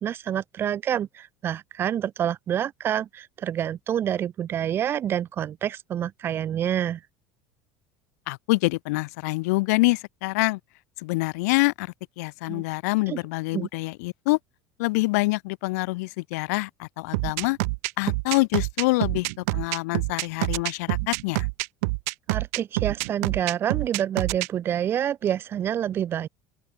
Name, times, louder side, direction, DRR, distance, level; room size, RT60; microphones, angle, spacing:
voice 1, 0.0-7.0 12.5-12.6 13.1-13.2 13.5-13.7 22.3-26.3, right 10 dB, 25° right, 3.2 m, -27 dB
voice 2, 8.3-10.6 11.0-14.4 14.8-17.6 18.0-21.5, left 23 dB, 85° left, 4.1 m, -26 dB
sound 1, 17.1-24.5, right 27 dB, 75° right, 1.3 m, -26 dB
open air
cardioid pair, 175°, 8 cm